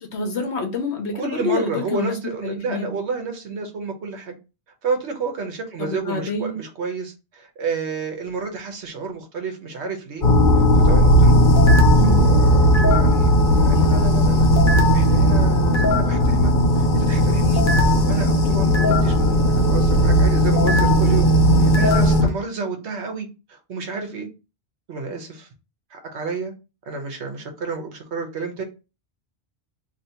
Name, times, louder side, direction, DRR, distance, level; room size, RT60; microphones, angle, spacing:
voice 1, 0.0-2.1 2.4-2.9 5.8-6.6 11.9-12.2, left 3 dB, 75° left, 1.1 m, -27 dB
voice 2, 1.1-4.4 4.8-10.2 10.5-11.5 12.0-14.5 14.9-21.3 21.6-24.3 24.9-25.5 25.9-26.5 26.8-28.6, right 4 dB, 80° right, 1.2 m, -30 dB
sound 1, 10.2-22.3, equal, 55° left, 0.8 m, -16 dB
3.0 x 2.7 x 4.3 m
omnidirectional pair, 1.1 m